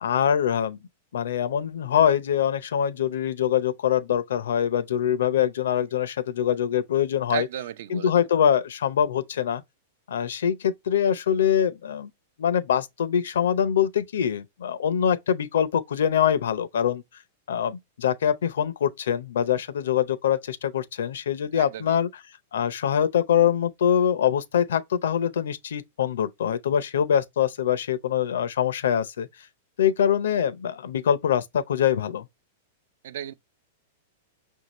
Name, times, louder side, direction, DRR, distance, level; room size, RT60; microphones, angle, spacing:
voice 1, 0.0-0.8 1.1-7.5 7.9-9.6 10.1-12.1 12.4-17.0 17.5-22.1 22.5-29.3 29.8-32.3, left 9 dB, 85° left, 0.6 m, -24 dB
voice 2, 7.3-8.1 21.6-22.0 33.0-33.3, right 11 dB, 65° right, 0.5 m, -33 dB
5.9 x 2.7 x 3.0 m
supercardioid pair, 150°, 0 cm